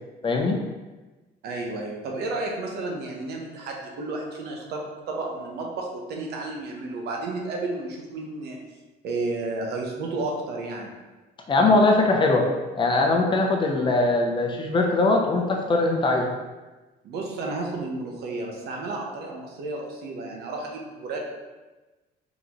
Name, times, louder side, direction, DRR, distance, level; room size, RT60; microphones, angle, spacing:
voice 1, 0.2-0.6 11.5-12.5 12.8-16.3, left 2 dB, 30° left, 1 dB, 0.6 m, -21 dB
voice 2, 1.4-8.6 9.0-10.9 17.0-21.3, right 2 dB, 75° right, 0 dB, 0.9 m, -32 dB
3.9 x 3.7 x 3.0 m, 1.2 s
cardioid pair, 110°, 17 cm